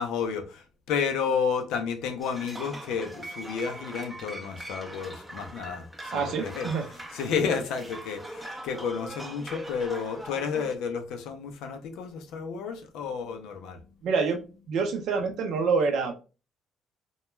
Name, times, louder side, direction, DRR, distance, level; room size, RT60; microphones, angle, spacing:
voice 1, 0.0-14.0, left 6 dB, 90° left, 0.5 m, -31 dB
sound 1, 2.2-10.8, right 1 dB, 10° right, 0.5 m, -41 dB
voice 2, 6.1-6.8 14.0-14.4 14.7-16.1, right 5 dB, 70° right, 0.5 m, -26 dB
2.2 x 2.2 x 3.0 m
cardioid pair, 130°, 0 cm